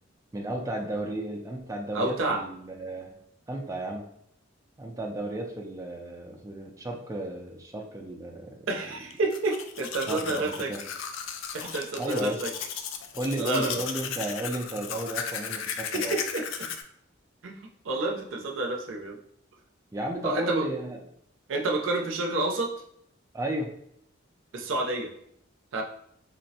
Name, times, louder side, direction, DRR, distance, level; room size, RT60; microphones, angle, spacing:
voice 1, 0.3-3.2 3.5-4.1 4.8-8.7 10.1-10.8 12.0-12.4 13.1-16.2 19.9-21.0 23.3-23.7, right 1 dB, 15° right, 0 dB, 0.3 m, -33 dB
voice 2, 1.9-2.4 8.7-10.7 11.5-12.5 13.4-13.8 15.9-16.7 17.4-19.2 20.2-20.7 21.5-22.7 24.5-25.1 25.7-25.8, right 2 dB, 80° right, 1 dB, 0.5 m, -29 dB
Domestic sounds home sounds, 9.1-16.8, left 7 dB, 80° left, 0.3 m, -36 dB
4.2 x 2.0 x 2.7 m, 0.70 s
head